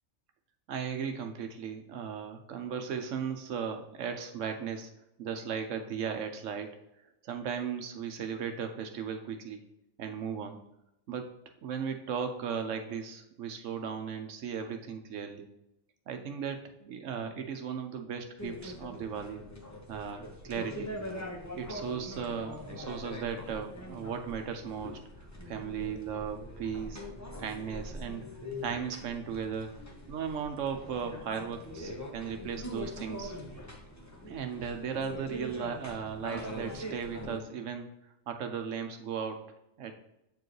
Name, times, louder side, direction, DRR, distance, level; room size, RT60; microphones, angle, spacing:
voice 1, 0.7-4.9 5.2-6.8 7.2-9.6 10.0-10.6 11.1-11.3 11.6-15.5 16.1-19.4 19.9-20.9 21.5-27.0 27.4-28.2 28.6-29.8 30.1-33.3 34.3-37.9 38.3-39.9, right 7 dB, 80° right, 5 dB, 1.0 m, -36 dB
sound 1, 18.4-37.4, equal, 15° left, 1.0 m, -43 dB
8.3 x 4.6 x 3.1 m, 0.84 s
omnidirectional pair, 1.3 m